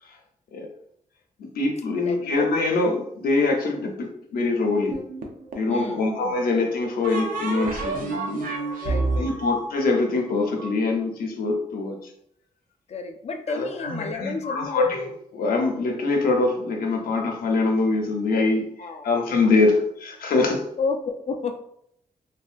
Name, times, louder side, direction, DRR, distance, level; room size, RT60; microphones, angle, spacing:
voice 1, 1.4-5.0 5.5-8.5 9.2-12.0 13.5-18.7 19.0-19.7 20.0-20.7, left 3 dB, 90° left, 2 dB, 0.6 m, -24 dB
voice 2, 2.0-2.3 5.7-6.4 8.8-9.4 12.9-14.9 18.8-19.1 19.4-19.6 20.8-21.6, left 4 dB, 45° left, 6 dB, 0.4 m, -31 dB
sound 1, 4.9-5.8 7.0-10.7, right 3 dB, 70° right, 0.6 m, -29 dB
3.4 x 2.2 x 2.4 m, 0.72 s
cardioid pair, 100°, 15 cm